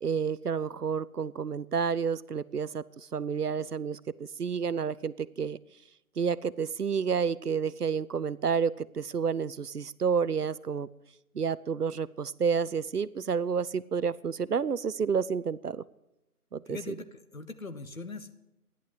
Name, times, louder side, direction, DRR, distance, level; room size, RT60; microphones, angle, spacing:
voice 1, 0.0-2.8 3.1-4.0 4.4-5.6 6.2-10.9 11.3-15.8 16.5-16.8, right 6 dB, 90° right, 18 dB, 0.7 m, -30 dB
voice 2, 16.7-18.5, left 3 dB, 60° left, 11 dB, 1.5 m, -41 dB
14.0 x 11.0 x 7.6 m, 0.89 s
figure-of-eight pair, 165°, 45 cm